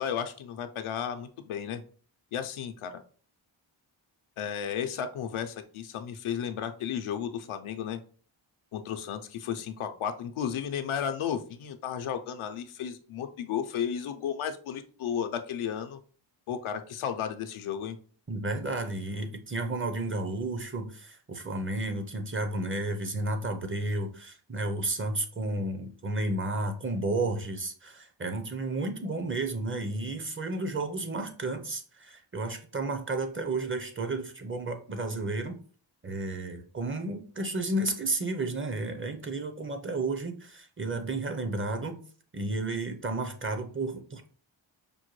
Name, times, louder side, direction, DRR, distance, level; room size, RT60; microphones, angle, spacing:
voice 1, 0.0-1.8 2.3-3.0 4.4-8.0 8.7-16.0 16.5-18.0, left 8 dB, 85° left, 8 dB, 0.6 m, -33 dB
voice 2, 18.3-35.6 36.0-42.0 42.3-44.3, right 2 dB, 25° right, 6 dB, 0.5 m, -32 dB
5.2 x 2.1 x 3.0 m, 0.42 s
cardioid pair, 75°, 48 cm